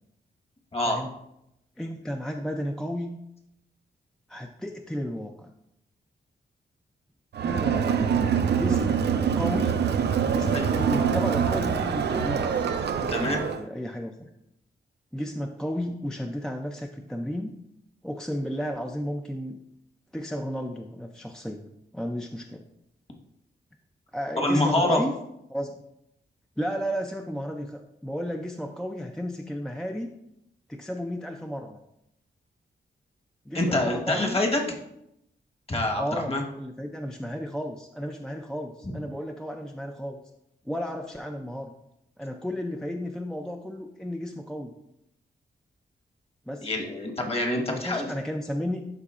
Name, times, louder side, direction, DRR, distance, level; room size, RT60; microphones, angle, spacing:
voice 1, 0.7-1.0 10.5-10.7 13.1-13.4 24.4-25.0 33.5-34.6 35.7-36.4 46.6-48.1, left 1 dB, 35° left, 1 dB, 1.3 m, -25 dB
voice 2, 1.8-3.2 4.3-5.5 7.4-8.0 8.6-9.0 9.4-9.7 10.3-12.6 13.0-14.3 15.1-17.5 18.0-19.6 20.1-21.7 21.9-22.7 24.1-25.1 25.5-25.8 26.6-30.1 30.7-31.8 33.5-34.4 36.0-40.2 40.7-41.7 42.2-44.7 46.5-46.7 47.7-48.9, equal, 5° left, 3 dB, 0.4 m, -33 dB
Crowd, 7.3-13.6, right 7 dB, 65° right, 0.5 m, -25 dB
11.5 x 3.9 x 2.5 m, 0.81 s
wide cardioid pair, 95°, 18 cm